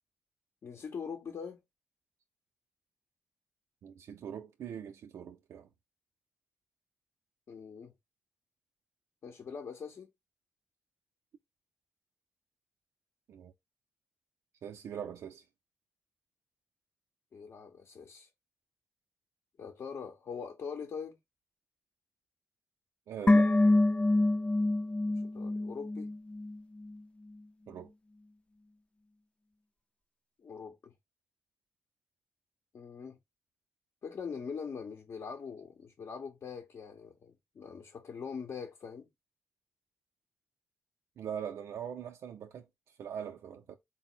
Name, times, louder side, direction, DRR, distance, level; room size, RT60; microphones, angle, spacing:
voice 1, 0.6-1.6 7.5-7.9 9.2-10.1 17.3-18.3 19.6-21.2 25.1-26.1 30.4-30.9 32.7-33.2 34.0-39.1, left 6 dB, 65° left, 0.7 m, -42 dB
voice 2, 3.8-5.7 13.3-13.5 14.6-15.5 23.1-23.6 27.7-27.9 41.2-43.8, right 8 dB, 80° right, 0.4 m, -42 dB
sound 1, 23.3-26.6 26.8-26.9, left 2 dB, 25° left, 0.4 m, -26 dB
3.9 x 2.0 x 4.2 m
cardioid pair, 60°, 5 cm